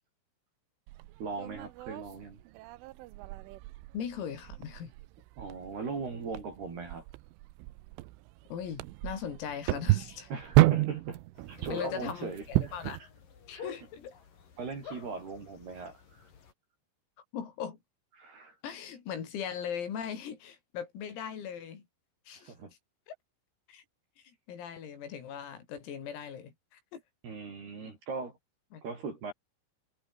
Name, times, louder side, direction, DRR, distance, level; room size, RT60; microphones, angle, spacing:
sound 1, 0.9-13.0, right 18 dB, 80° right, 3.2 m, -31 dB
voice 1, 1.2-2.4 5.4-7.0 10.3-11.2 11.5-12.7 13.5-13.7 14.6-16.3 18.2-18.6 22.4-22.7 27.2-28.4 28.8-29.3, right 4 dB, 50° right, 7.3 m, -39 dB
voice 2, 3.9-4.9 8.5-10.3 11.6-13.0 13.5-14.2 17.3-17.8 18.6-21.8 22.3-22.5 23.1-23.2 23.7-23.8 24.2-27.0 27.8-27.9 28.7-28.8, left 8 dB, 80° left, 7.3 m, -39 dB
sound 2, 11.4-16.5, left 6 dB, 45° left, 5.2 m, -46 dB
omnidirectional pair, 6.0 m